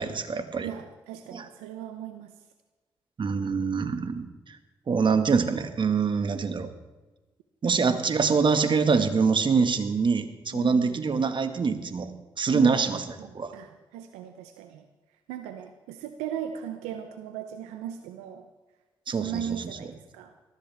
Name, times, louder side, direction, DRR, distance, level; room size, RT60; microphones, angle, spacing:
voice 1, 0.0-0.7 1.3-1.5 3.2-4.6 4.9-6.7 7.6-12.1 12.4-13.0 13.3-13.5 19.1-19.8, right 5 dB, 50° right, 9 dB, 1.7 m, -25 dB
voice 2, 0.6-2.3 10.5-11.1 12.5-12.9 13.2-14.8 15.3-18.5 19.1-20.3, right 9 dB, 85° right, 8 dB, 0.7 m, -37 dB
20.0 x 14.0 x 3.5 m, 1.2 s
hypercardioid pair, 45°, 11 cm